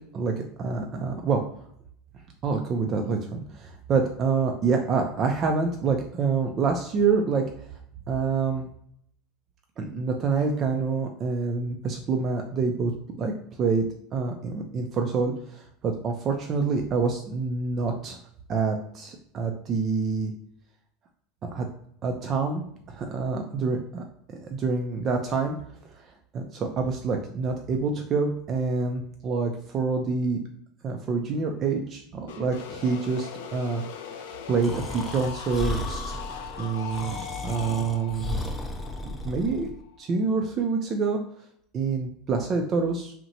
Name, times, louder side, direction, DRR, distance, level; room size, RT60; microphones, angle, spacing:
voice 1, 0.1-1.4 2.4-7.5 8.1-8.7 9.8-12.9 13.2-13.3 13.6-13.8 14.1-18.2 18.5-20.3 21.5-21.7 22.0-25.6 25.9-26.1 26.3-30.4 30.8-33.8 34.5-36.1 36.6-38.4 39.0-39.7 40.0-41.2 41.7-43.1, right 4 dB, 40° right, 3 dB, 0.4 m, -27 dB
sound 1, 32.3-40.0, left 7 dB, 80° left, 0.4 m, -40 dB
Breathing, 34.6-39.7, left 2 dB, 5° left, 0.6 m, -34 dB
2.8 x 2.1 x 2.7 m, 0.67 s
hypercardioid pair, 95°, 0 cm